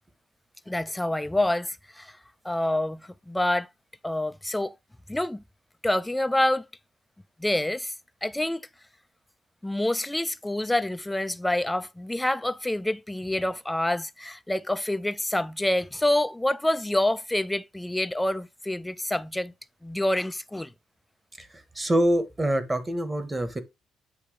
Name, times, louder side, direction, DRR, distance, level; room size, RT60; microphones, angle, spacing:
voice 1, 0.7-2.2 2.4-3.7 4.0-4.8 5.1-5.4 5.8-6.6 7.4-7.9 8.2-8.7 9.6-19.5 19.8-20.7, left 1 dB, 10° left, 0.4 m, -27 dB
voice 2, 21.7-23.6, right 1 dB, 20° right, 1.3 m, -25 dB
8.4 x 2.8 x 4.9 m
cardioid pair, 90°, 0 cm